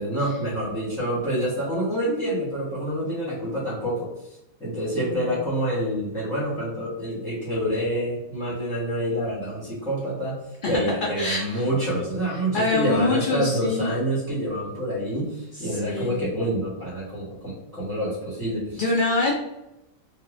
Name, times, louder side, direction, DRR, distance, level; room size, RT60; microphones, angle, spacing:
voice 1, 0.0-10.4 10.6-18.8, equal, ahead, -9 dB, 0.9 m, -27 dB
voice 2, 4.9-5.3 11.2-11.7 12.5-13.9 15.5-16.3 18.7-19.3, left 2 dB, 65° left, -3 dB, 0.5 m, -25 dB
3.3 x 2.1 x 2.4 m, 0.88 s
omnidirectional pair, 1.4 m